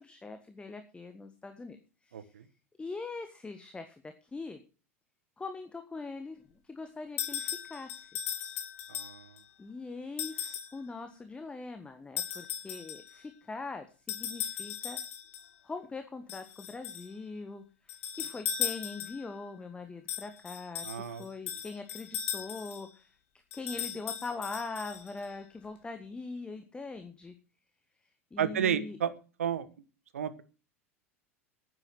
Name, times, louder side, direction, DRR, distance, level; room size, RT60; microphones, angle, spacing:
voice 1, 0.0-2.3 2.8-4.6 5.4-8.1 9.6-15.0 15.6-23.1 23.5-27.3 28.3-29.0, left 3 dB, 15° left, 8 dB, 1.5 m, -42 dB
voice 2, 2.1-2.4 8.9-9.3 20.8-21.2 28.4-29.1 29.4-29.7 30.1-30.4, right 8 dB, 70° right, 15 dB, 1.2 m, -32 dB
sound 1, 7.2-9.4 10.2-10.8 12.2-13.2 14.1-15.5 16.3-17.1 17.9-19.3 20.1-22.9 23.5-25.3, left 9 dB, 60° left, 3.0 m, -37 dB
9.8 x 9.4 x 7.7 m, 0.35 s
figure-of-eight pair, 80°, 8 cm